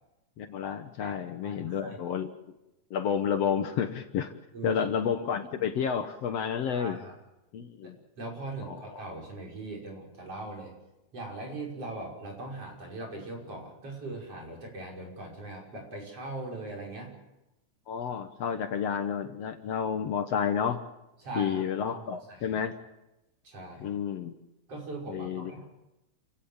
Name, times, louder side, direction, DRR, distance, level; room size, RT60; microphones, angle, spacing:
voice 1, 0.4-2.3 2.9-4.3 4.6-7.0 7.5-8.0 8.6-8.8 17.9-20.8 21.4-22.7 23.8-24.3 25.1-25.5, left 7 dB, 65° left, 7 dB, 2.1 m, -30 dB
voice 2, 1.0-2.0 4.5-4.8 6.7-7.1 7.8-10.7 11.1-17.2 21.2-22.0 22.3-22.6 23.4-24.0 24.7-25.6, right 2 dB, 50° right, 0 dB, 6.6 m, -40 dB
29.0 x 16.5 x 7.3 m, 0.95 s
omnidirectional pair, 3.4 m